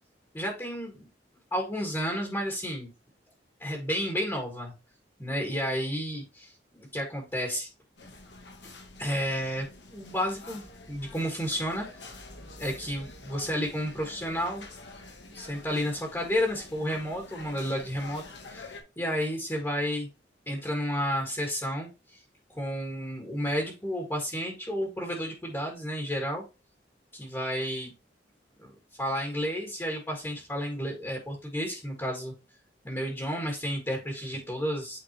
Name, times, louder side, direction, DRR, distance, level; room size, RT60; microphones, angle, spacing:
voice 1, 0.3-1.1 1.5-2.9 3.6-4.7 5.2-7.7 9.0-12.0 12.6-14.7 15.3-18.2 18.5-20.1 20.5-22.2 22.5-26.4 27.1-27.9 28.6-28.7 29.0-32.3 32.8-35.0, equal, 15° left, 1 dB, 1.8 m, -31 dB
sound 1, 8.0-18.8, left 2 dB, 75° left, 1.5 m, -47 dB
8.9 x 4.0 x 3.0 m, 0.28 s
head